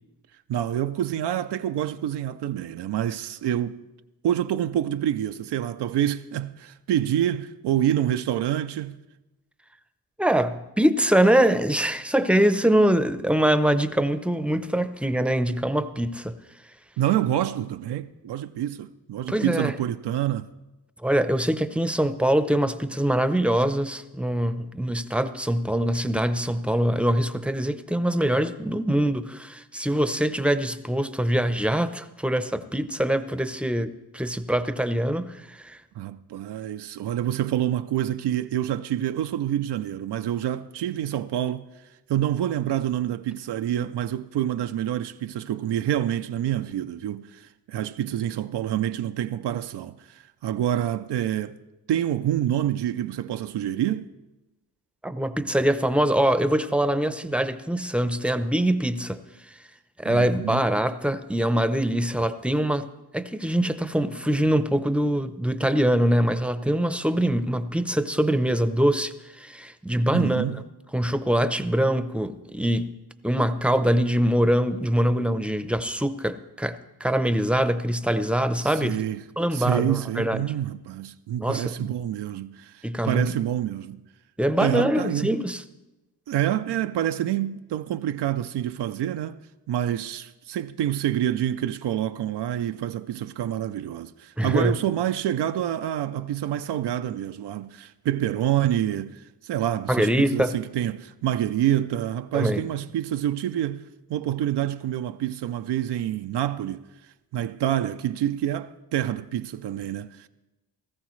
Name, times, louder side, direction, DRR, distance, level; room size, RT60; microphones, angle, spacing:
voice 1, 0.5-3.8 4.2-9.0 17.0-20.5 35.9-41.7 42.1-51.6 51.9-54.1 60.1-60.6 70.1-70.6 78.6-79.2 79.5-84.0 84.6-85.3 86.3-89.4 89.7-106.8 107.3-110.3, right 11 dB, 85° right, 0.5 m, -27 dB
voice 2, 10.2-16.4 19.3-19.7 21.0-35.8 55.0-59.2 60.0-62.9 63.1-70.5 70.9-72.9 73.2-79.0 79.4-80.4 81.4-81.7 82.8-83.2 84.4-85.6 94.4-94.7 99.9-100.6 102.3-102.6, right 1 dB, 5° right, 0.6 m, -23 dB
17.5 x 14.5 x 3.1 m
cardioid pair, 70°, 40 cm